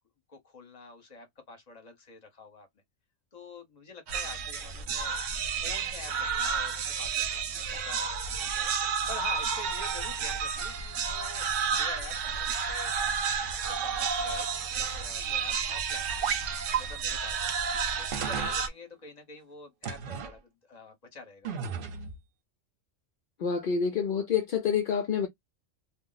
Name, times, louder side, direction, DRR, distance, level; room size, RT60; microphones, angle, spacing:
voice 1, 0.3-2.7 3.3-5.2 5.6-12.9 13.4-16.2 16.8-17.5 18.0-21.5, left 3 dB, 35° left, 0.9 m, -47 dB
sound 1, 4.1-18.7, right 6 dB, 75° right, 1.0 m, -31 dB
sound 2, 16.2-16.4 16.7-16.8 17.5-17.6 18.1-18.6 19.8-20.3 21.4-22.2, right 7 dB, 55° right, 0.7 m, -33 dB
voice 2, 23.4-25.3, left 7 dB, 60° left, 0.6 m, -27 dB
2.4 x 2.0 x 3.7 m
omnidirectional pair, 1.3 m